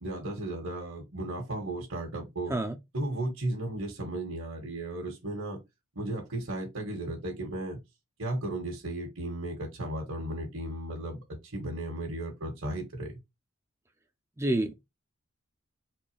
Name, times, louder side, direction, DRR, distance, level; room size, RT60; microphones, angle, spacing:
voice 1, 0.0-2.5 2.9-5.6 5.9-7.8 8.2-11.2 11.5-13.1, right 1 dB, 70° right, 1.6 m, -35 dB
voice 2, 14.4-14.7, right 1 dB, 15° right, 0.5 m, -28 dB
4.3 x 3.3 x 3.3 m
head